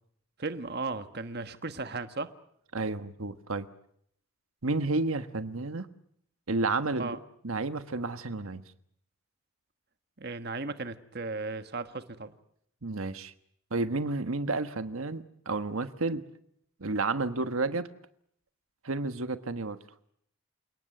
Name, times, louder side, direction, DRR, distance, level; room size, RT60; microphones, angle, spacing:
voice 1, 0.4-2.3 7.0-7.2 10.2-12.3, right 3 dB, 50° right, 10 dB, 1.4 m, -36 dB
voice 2, 2.7-3.7 4.6-5.9 6.5-7.1 7.4-8.6 12.8-13.3 13.7-16.2 16.8-17.9 18.8-19.8, right 3 dB, 85° right, 10 dB, 1.4 m, -31 dB
29.0 x 18.5 x 9.2 m, 0.70 s
head